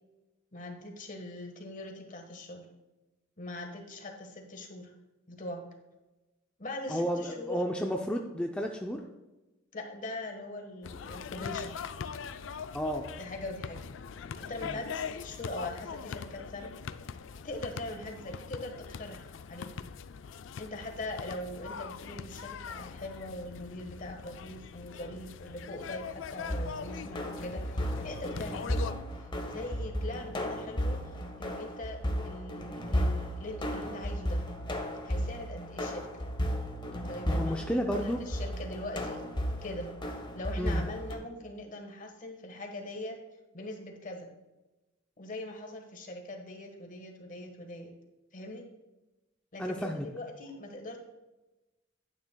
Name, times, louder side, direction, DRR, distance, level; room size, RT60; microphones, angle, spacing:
voice 1, 0.5-2.7 3.4-4.9 5.3-5.7 6.6-7.6 9.7-11.8 13.2-13.8 14.4-16.7 17.4-19.7 20.6-34.5 35.0-36.1 37.0-39.2 39.6-39.9 40.3-43.2 43.5-44.3 45.2-47.9 48.3-48.7 49.5-51.0, left 1 dB, 40° left, 3 dB, 1.4 m, -42 dB
voice 2, 6.9-9.0 12.7-13.1 14.6-14.8 37.3-38.2 40.6-40.8 49.6-50.1, equal, 5° left, 1 dB, 0.5 m, -32 dB
sound 1, 10.8-28.9, left 6 dB, 70° left, 0.4 m, -42 dB
sound 2, 26.4-41.2, equal, 25° left, 0.9 m, -34 dB
10.5 x 9.1 x 2.3 m, 1.0 s
head